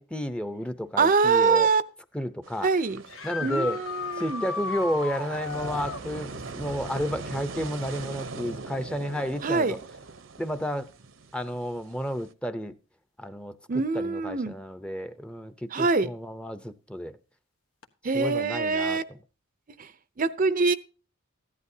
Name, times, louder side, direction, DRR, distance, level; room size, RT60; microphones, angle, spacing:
voice 1, 0.0-1.7 2.1-2.7 3.2-3.8 4.2-9.8 10.4-10.9 11.3-12.7 13.2-17.2 18.1-19.0, equal, 5° left, 0.7 m, -32 dB
voice 2, 1.0-1.8 2.6-3.0 3.4-4.4 9.4-9.8 13.7-14.6 15.7-16.1 18.0-19.0 19.8-19.9 20.2-20.7, right 4 dB, 45° right, 0.6 m, -24 dB
sound 1, 2.4-12.3, right 3 dB, 70° right, 0.9 m, -41 dB
sound 2, 3.1-6.1 9.4-9.5 11.5-11.6 17.8-17.9, left 5 dB, 80° left, 1.3 m, -34 dB
15.0 x 11.0 x 2.8 m
head